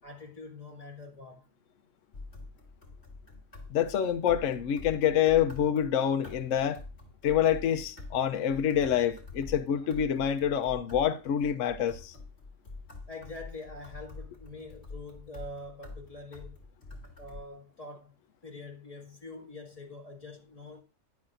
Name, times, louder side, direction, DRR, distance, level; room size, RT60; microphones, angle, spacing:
voice 1, 0.0-1.5 13.1-16.6 17.2-18.1 18.4-20.8, left 2 dB, 25° left, 2.2 m, -45 dB
sound 1, 2.1-17.4, left 3 dB, 45° left, 3.0 m, -46 dB
voice 2, 3.7-6.8 7.2-12.1, left 9 dB, 65° left, 1.0 m, -27 dB
12.0 x 10.5 x 2.6 m
omnidirectional pair, 1.5 m